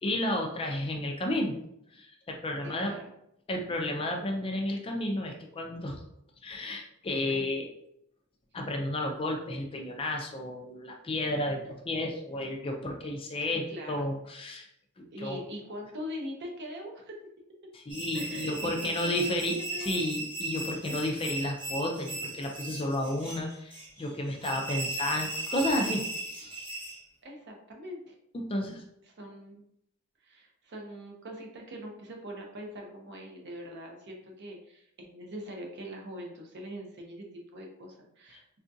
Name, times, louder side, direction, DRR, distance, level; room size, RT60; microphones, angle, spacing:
voice 1, 0.0-1.5 1.9-2.9 3.5-6.0 6.4-7.7 8.5-14.7 15.0-15.4 17.7-26.6 28.5-28.8, left 1 dB, 25° left, 2 dB, 0.4 m, -32 dB
voice 2, 2.6-3.1 7.3-7.6 13.7-14.1 15.1-17.2 18.1-19.4 19.7-20.1 20.9-21.0 27.2-28.1 29.1-29.6 30.2-38.4, equal, 50° right, 1 dB, 0.6 m, -42 dB
sound 1, 17.9-27.0, right 2 dB, 25° right, 0.9 m, -37 dB
3.6 x 2.3 x 2.6 m, 0.77 s
head